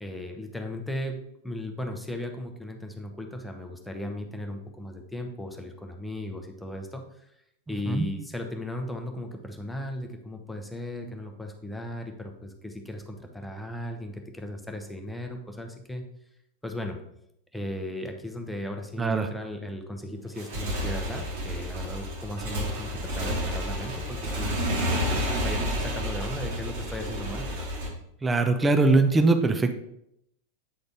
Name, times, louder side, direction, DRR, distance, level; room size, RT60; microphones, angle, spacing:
voice 1, 0.0-7.0 7.7-16.0 16.6-17.0 17.5-24.9 25.3-27.5, left 1 dB, 5° left, 3 dB, 0.9 m, -36 dB
voice 2, 19.0-19.3 28.2-29.7, right 3 dB, 15° right, 7 dB, 0.6 m, -21 dB
Motorcycle / Engine, 20.2-27.9, equal, 55° right, 1.9 m, -30 dB
8.5 x 3.9 x 3.6 m, 0.77 s
figure-of-eight pair, 90°, 0 cm